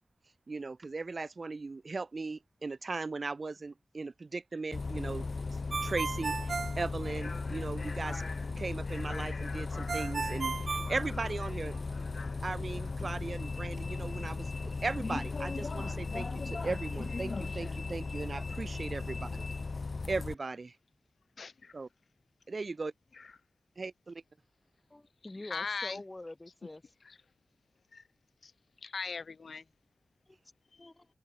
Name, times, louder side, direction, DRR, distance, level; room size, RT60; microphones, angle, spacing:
voice 1, 0.5-5.3 5.8-8.2 8.6-11.8 12.4-19.4 20.1-20.7 21.7-21.9 22.5-22.9 23.8-24.2, right 3 dB, 55° right, 0.9 m, -38 dB
Bus, 4.7-20.3, left 3 dB, 55° left, 0.4 m, -36 dB
Ringtone, 5.7-7.6 9.9-11.8, right 5 dB, 85° right, 1.0 m, -36 dB
voice 2, 21.4-21.7 23.1-23.3 25.4-26.0 27.0-27.2 27.9-28.1 28.4-28.5 28.8-29.6, left 4 dB, 80° left, 2.6 m, -39 dB
voice 3, 24.9-26.8 30.3-30.4 30.8-31.1, left 2 dB, 25° left, 2.0 m, -45 dB
open air
wide cardioid pair, 90°, 0 cm